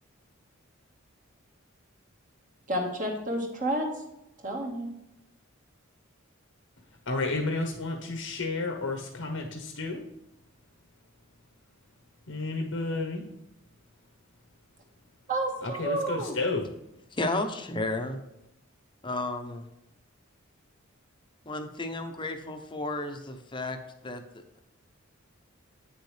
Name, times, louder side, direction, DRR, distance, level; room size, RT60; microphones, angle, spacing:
voice 1, 2.7-3.9 4.4-4.9 15.3-16.4, right 1 dB, 40° right, 0 dB, 1.7 m, -30 dB
voice 2, 7.1-10.0 12.3-13.2 15.6-16.6, left 3 dB, 75° left, 2 dB, 1.1 m, -31 dB
voice 3, 17.1-18.2 19.0-19.7 21.4-24.6, left 2 dB, 25° left, 6 dB, 0.8 m, -33 dB
8.9 x 6.7 x 3.3 m, 0.86 s
head